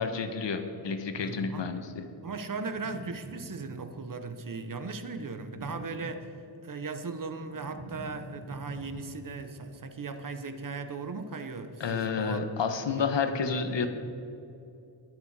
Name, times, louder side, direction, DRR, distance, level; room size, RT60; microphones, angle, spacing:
voice 1, 0.0-2.0 11.8-13.9, left 5 dB, 65° left, 7 dB, 1.2 m, -30 dB
voice 2, 1.1-1.7 2.2-6.3 6.6-12.4 13.0-13.1 13.5-13.7, right 4 dB, 45° right, 9 dB, 0.9 m, -38 dB
sound 1, 2.6-4.2 5.2-6.7 7.0-9.4, right 2 dB, 70° right, 2.2 m, -46 dB
21.5 x 8.3 x 4.8 m, 2.8 s
wide cardioid pair, 165°, 46 cm